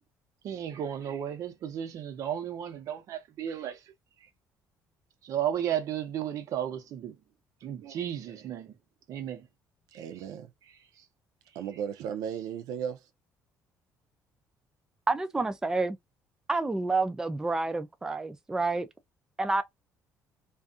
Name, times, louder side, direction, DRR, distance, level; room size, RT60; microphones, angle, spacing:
voice 1, 0.4-3.8 5.2-7.2 7.6-8.7 9.1-9.5 9.9-10.1 11.0-11.1, right 10 dB, 60° right, 0.8 m, -34 dB
voice 2, 9.9-10.5 11.6-13.1, right 8 dB, 80° right, 0.4 m, -35 dB
voice 3, 15.1-16.0 16.5-18.9 19.4-19.6, right 3 dB, 10° right, 0.4 m, -29 dB
2.5 x 2.4 x 2.3 m
cardioid pair, 130°, 6 cm